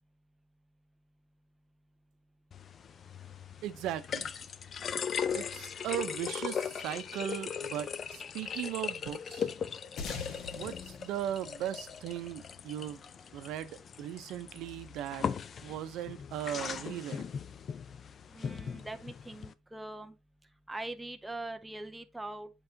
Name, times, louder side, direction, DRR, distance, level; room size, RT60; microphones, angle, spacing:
sound 1, 2.5-19.5, left 7 dB, 40° left, 0.4 m, -39 dB
voice 1, 3.6-4.3 5.3-9.5 10.5-13.0 13.3-15.3 15.6-17.3, right 11 dB, 75° right, 0.6 m, -38 dB
sound 2, 10.0-12.8, left 5 dB, 60° left, 1.4 m, -43 dB
voice 2, 18.3-20.1 20.7-22.5, right 2 dB, 5° right, 0.6 m, -42 dB
7.8 x 4.8 x 2.7 m
cardioid pair, 130°, 0 cm